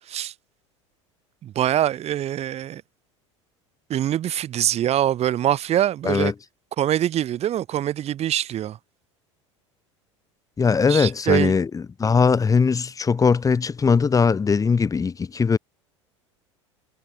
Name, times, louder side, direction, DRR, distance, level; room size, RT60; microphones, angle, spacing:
voice 1, 1.4-2.8 3.9-6.3 6.8-8.8 10.9-11.5, right 11 dB, 40° right, 7.0 m, -24 dB
voice 2, 10.6-15.6, left 5 dB, 20° left, 2.6 m, -20 dB
hypercardioid pair, 85°, 16 cm